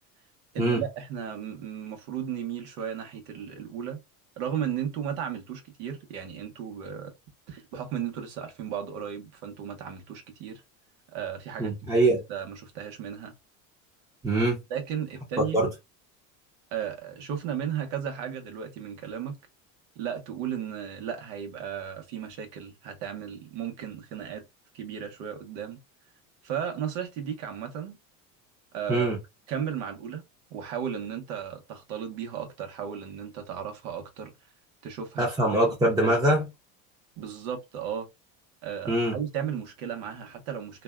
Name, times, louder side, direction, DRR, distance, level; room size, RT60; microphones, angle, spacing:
voice 1, 0.5-4.0 4.4-7.1 7.5-10.6 11.1-11.7 12.3-13.3 14.7-15.6 16.7-19.4 20.0-24.5 24.7-25.8 26.4-28.0 28.7-29.2 29.5-30.2 30.5-34.3 34.8-35.6 36.0-36.4 37.2-38.1 38.6-40.8, right 8 dB, 70° right, 1.0 m, -35 dB
voice 2, 11.6-12.2 14.2-14.6 15.5-15.7 28.9-29.2 35.2-36.5 38.9-39.1, right 1 dB, 10° right, 0.7 m, -23 dB
2.6 x 2.2 x 2.2 m
supercardioid pair, 100°, 43 cm